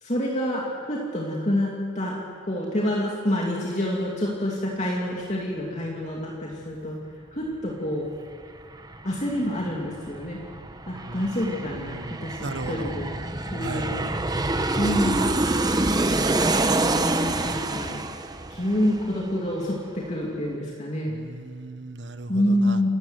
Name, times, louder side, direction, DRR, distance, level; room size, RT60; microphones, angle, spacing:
voice 1, 0.0-2.2 2.5-7.0 7.3-8.1 9.0-10.4 10.9-13.1 13.5-14.0 14.8-15.4 16.6-18.0 18.5-21.1 22.3-22.9, left 1 dB, 35° left, -3 dB, 2.7 m, -27 dB
Aircraft, 8.1-8.2 8.4-19.7 20.0-20.1, right 2 dB, 20° right, 0.9 m, -27 dB
voice 2, 10.9-12.9 13.6-13.9 21.1-22.8, right 2 dB, 65° right, 10 dB, 1.3 m, -37 dB
28.5 x 14.5 x 8.2 m, 2.2 s
head